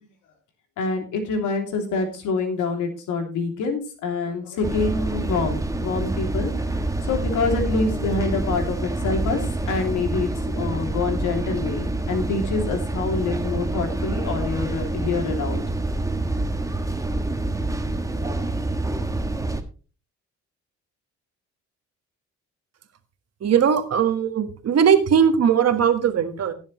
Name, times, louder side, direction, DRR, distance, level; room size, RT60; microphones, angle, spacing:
voice 1, 0.8-6.5 7.0-15.6, left 4 dB, 90° left, 4 dB, 2.9 m, -26 dB
sound 1, 4.6-19.6, right 2 dB, 10° right, 1.3 m, -27 dB
voice 2, 23.4-26.5, right 7 dB, 55° right, 8 dB, 1.6 m, -19 dB
17.0 x 7.3 x 3.1 m, 0.36 s
cardioid pair, 90°, 30 cm